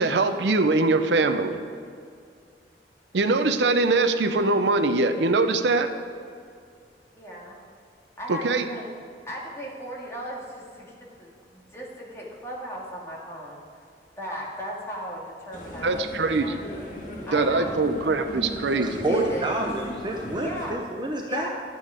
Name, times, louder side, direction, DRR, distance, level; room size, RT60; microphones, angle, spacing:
voice 1, 0.0-1.6 3.1-5.9 8.3-8.6 15.8-16.6 17.3-19.3, right 3 dB, 75° right, 9 dB, 0.6 m, -22 dB
voice 2, 7.1-7.6 8.2-8.9 9.2-13.6 14.2-16.5 17.3-17.9 19.0-19.7 20.4-20.8 21.2-21.5, equal, 15° left, -4 dB, 2.1 m, -37 dB
sound 1, 15.5-20.7, left 1 dB, 45° left, 1.9 m, -36 dB
voice 3, 18.8-21.5, right 1 dB, 25° right, 1 dB, 0.6 m, -29 dB
11.5 x 8.5 x 5.1 m, 2.3 s
head